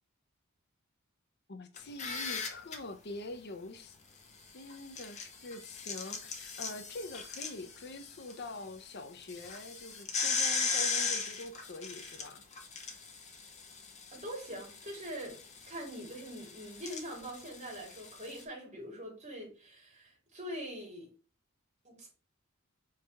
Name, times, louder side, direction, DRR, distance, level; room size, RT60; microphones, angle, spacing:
voice 1, 1.5-4.0 4.5-12.4, left 2 dB, 55° left, 0.7 m, -44 dB
sound 1, 1.8-2.8 4.7-8.3 8.7-8.8 9.2-18.4, left 5 dB, 35° left, 1.3 m, -38 dB
voice 2, 14.2-15.4 15.7-21.1 21.8-22.1, equal, 35° right, 3.5 m, -43 dB
5.7 x 4.8 x 3.4 m
head